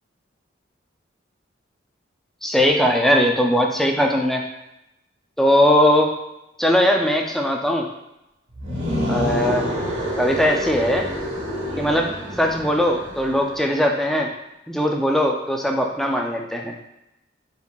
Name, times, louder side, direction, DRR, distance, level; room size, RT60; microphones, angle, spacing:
voice 1, 2.4-4.4 5.4-6.1 6.6-7.9 9.1-9.7 10.2-11.1 11.8-12.1 12.4-14.3 14.7-16.7, equal, ahead, 1 dB, 0.4 m, -19 dB
sound 1, 8.5-13.6, equal, 85° right, 1.2 m, -27 dB
5.2 x 3.3 x 2.3 m, 0.90 s
head